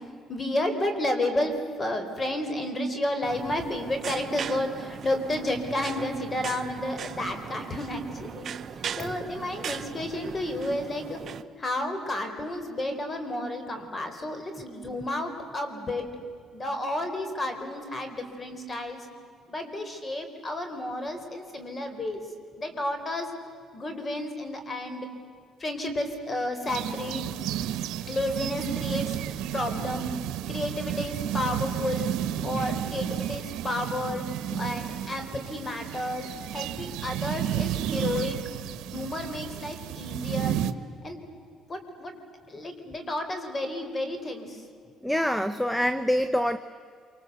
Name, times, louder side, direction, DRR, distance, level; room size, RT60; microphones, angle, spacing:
voice 1, 0.3-1.5 1.8-8.5 9.0-11.2 11.6-16.1 16.5-19.0 19.5-22.2 22.6-23.3 23.7-25.1 25.6-27.3 28.1-29.2 29.5-30.1 30.5-32.1 32.4-34.2 34.6-38.4 38.9-40.6 41.0-41.2 41.7-42.1 42.5-44.6, left 1 dB, 25° left, 7 dB, 4.1 m, -31 dB
sound 1, 3.2-11.4, right 8 dB, 45° right, 0.9 m, -39 dB
sound 2, 26.7-40.7, right 11 dB, 85° right, 1.1 m, -32 dB
voice 2, 45.0-46.6, equal, 5° left, 12 dB, 0.8 m, -26 dB
27.0 x 25.5 x 8.1 m, 2.3 s
cardioid pair, 125°, 0 cm